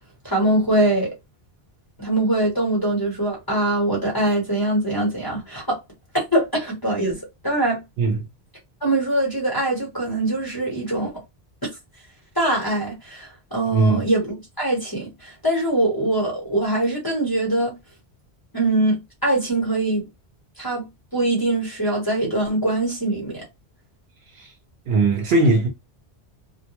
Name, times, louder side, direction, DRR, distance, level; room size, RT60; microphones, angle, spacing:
voice 1, 0.2-1.1 2.0-5.8 6.3-7.8 8.8-11.1 12.3-17.7 18.5-20.0 20.6-20.9 21.1-23.4, right 1 dB, 20° left, 0.9 m, -22 dB
voice 2, 8.0-8.3 13.7-14.1 24.3-24.5 24.9-25.7, right 3 dB, 70° right, 0.8 m, -19 dB
2.2 x 2.1 x 2.9 m
omnidirectional pair, 1.1 m